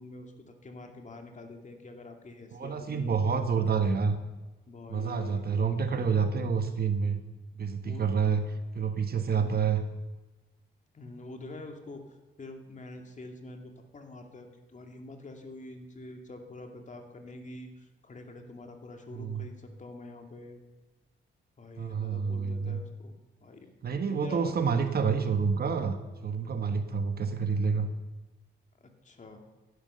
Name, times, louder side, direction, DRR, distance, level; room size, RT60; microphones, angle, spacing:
voice 1, 0.0-3.4 4.7-6.0 7.8-8.4 9.3-9.6 10.9-12.0 12.4-20.6 21.6-23.1 23.4-24.5 28.8-29.4, left 2 dB, 40° left, 4 dB, 2.5 m, -46 dB
voice 2, 2.5-4.2 4.9-7.2 7.5-8.4 8.7-9.8 19.1-19.4 21.8-22.8 23.8-27.9, right 6 dB, 50° right, 8 dB, 1.3 m, -28 dB
16.0 x 11.5 x 6.8 m, 1.1 s
cardioid pair, 105°, 20 cm